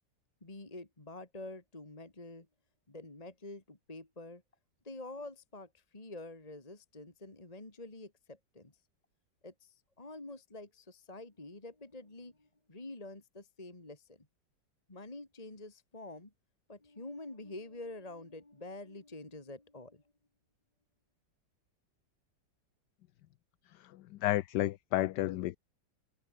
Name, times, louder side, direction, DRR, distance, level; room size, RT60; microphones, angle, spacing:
voice 1, 0.4-2.5 2.9-4.4 4.8-8.7 9.4-14.3 14.9-16.3 16.7-20.0, left 2 dB, 20° left, 2.5 m, -47 dB
voice 2, 23.8-25.6, left 15 dB, 75° left, 1.2 m, -32 dB
omnidirectional pair, 2.0 m